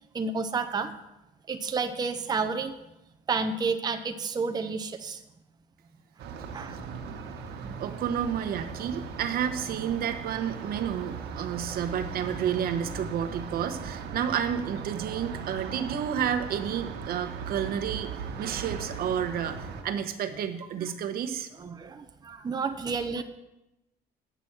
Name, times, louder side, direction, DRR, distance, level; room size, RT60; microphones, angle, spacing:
voice 1, 0.1-0.9 1.5-2.8 3.3-5.2 6.5-6.8 7.6-7.7 15.5-15.6 21.6-23.2, right 4 dB, 25° right, 8 dB, 0.6 m, -30 dB
sound 1, 6.2-19.8, right 5 dB, 80° right, 1.3 m, -38 dB
voice 2, 7.8-21.5, right 8 dB, 60° right, 7 dB, 1.0 m, -31 dB
9.4 x 6.0 x 7.2 m, 0.94 s
cardioid pair, 110°, 17 cm